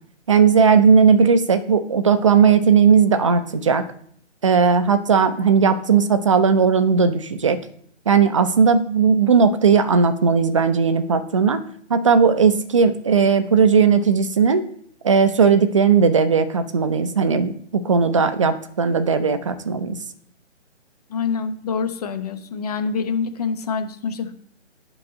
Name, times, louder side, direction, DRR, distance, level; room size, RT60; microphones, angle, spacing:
voice 1, 0.3-3.9 4.4-7.6 8.1-11.6 11.9-14.6 15.0-20.0, right 6 dB, 25° right, 10 dB, 0.5 m, -17 dB
voice 2, 21.1-24.3, left 5 dB, 35° left, 8 dB, 1.0 m, -26 dB
10.0 x 3.9 x 5.3 m, 0.62 s
hypercardioid pair, 155°, 36 cm